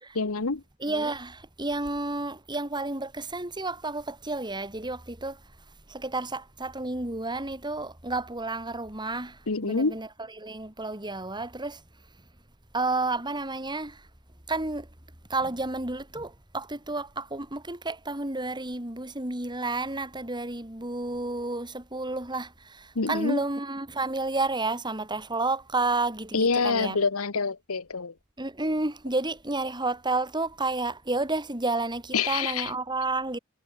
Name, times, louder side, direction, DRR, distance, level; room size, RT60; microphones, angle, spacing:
voice 1, 0.1-0.6 9.5-10.0 22.9-23.4 26.3-28.1 32.1-32.7, left 4 dB, 75° left, 1.2 m, -26 dB
voice 2, 0.8-5.4 5.9-10.1 10.4-11.8 12.7-14.0 14.5-14.9 15.3-27.0 28.4-33.4, right 2 dB, 20° right, 4.1 m, -31 dB
head